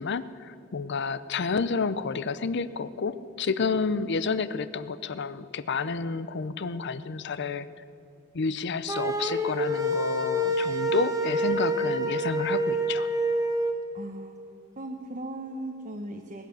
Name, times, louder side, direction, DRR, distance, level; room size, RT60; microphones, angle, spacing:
voice 1, 0.0-7.7 8.3-13.1, left 4 dB, 60° left, 15 dB, 0.6 m, -30 dB
sound 1, 8.9-13.7, right 1 dB, 20° right, 1.1 m, -27 dB
voice 2, 13.9-14.4 14.8-16.5, right 1 dB, 40° right, 3 dB, 0.9 m, -37 dB
20.5 x 9.3 x 6.9 m, 2.6 s
head